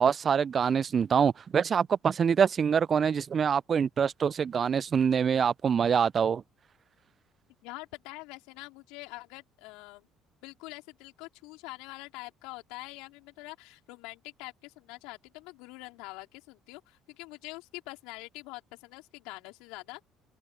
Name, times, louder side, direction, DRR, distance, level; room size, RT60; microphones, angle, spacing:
voice 1, 0.0-6.4, right 7 dB, 45° right, 0.3 m, -25 dB
voice 2, 7.6-10.1 10.4-20.0, left 23 dB, 75° left, 4.1 m, -45 dB
hypercardioid pair, 60°, 0 cm